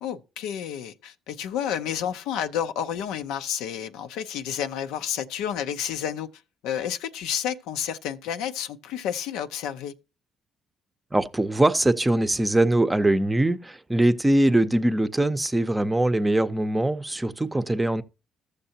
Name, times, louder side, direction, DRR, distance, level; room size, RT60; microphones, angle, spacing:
voice 1, 0.0-6.3 6.6-9.9, left 9 dB, 85° left, 0.5 m, -30 dB
voice 2, 11.1-18.0, right 1 dB, 15° right, 0.6 m, -22 dB
14.5 x 6.6 x 2.8 m
supercardioid pair, 70°, 0 cm